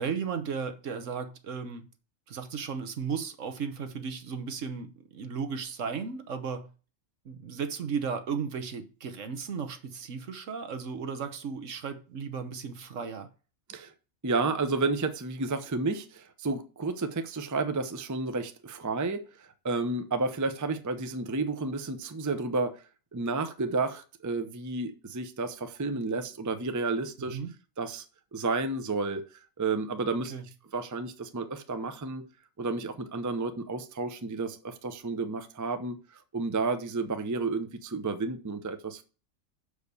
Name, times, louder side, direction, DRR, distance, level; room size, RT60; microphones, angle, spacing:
voice 1, 0.0-1.8 2.3-6.7 7.2-13.3 27.2-27.5 30.3-30.4, right 6 dB, 70° right, 1.4 m, -35 dB
voice 2, 14.2-22.8 23.1-27.4 27.8-28.1 28.3-30.3 30.7-32.2 32.6-39.0, right 3 dB, 20° right, 0.5 m, -31 dB
6.6 x 5.0 x 6.8 m
omnidirectional pair, 1.4 m